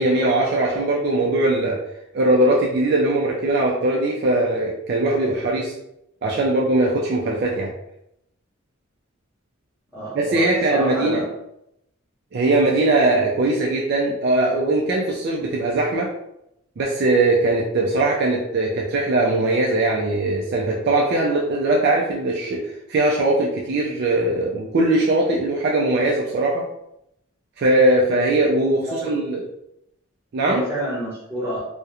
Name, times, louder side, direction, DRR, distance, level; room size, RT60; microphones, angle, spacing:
voice 1, 0.0-1.8 2.1-5.7 6.2-7.7 10.2-11.2 12.3-16.1 16.8-26.7 27.6-29.4 30.3-30.6, right 2 dB, 50° right, -2 dB, 0.3 m, -20 dB
voice 2, 9.9-11.3 28.9-29.2 30.4-31.6, equal, 10° right, -8 dB, 0.9 m, -29 dB
2.3 x 2.1 x 2.9 m, 0.81 s
head